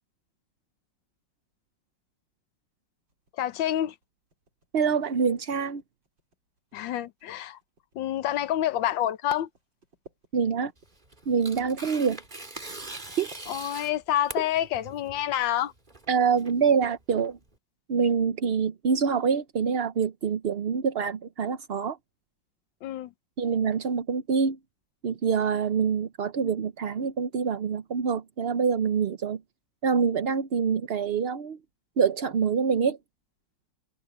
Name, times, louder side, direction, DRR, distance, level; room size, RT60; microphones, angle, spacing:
sound 1, 3.1-14.1, right 2 dB, 80° right, 7.2 m, -59 dB
voice 1, 3.4-3.9 6.7-7.6 7.9-9.5 13.5-15.7 22.8-23.1, left 12 dB, 85° left, 1.6 m, -28 dB
voice 2, 4.7-5.8 10.3-10.7 11.3-12.2 13.2-13.3 16.1-17.4 17.9-22.0 23.4-24.6 25.0-29.4 29.8-31.6 32.0-33.0, right 6 dB, 60° right, 0.6 m, -25 dB
Tearing, 10.8-17.5, right 2 dB, 25° right, 2.9 m, -42 dB
omnidirectional pair, 2.0 m